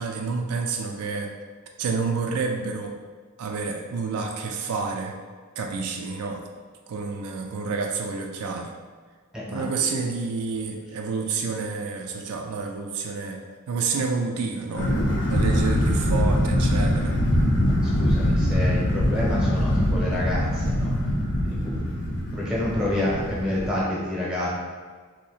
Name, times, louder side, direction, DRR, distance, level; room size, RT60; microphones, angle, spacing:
voice 1, 0.0-1.3 1.8-3.0 3.4-5.2 5.6-6.5 6.9-8.8 9.5-13.4 13.7-14.9 15.3-17.2, right 4 dB, 70° right, 2 dB, 0.4 m, -29 dB
sound 1, 14.8-23.8, equal, 55° left, 0.6 m, -23 dB
voice 2, 17.7-21.0 21.4-24.5, left 1 dB, 5° right, -6 dB, 0.9 m, -29 dB
2.8 x 2.8 x 4.0 m, 1.5 s
head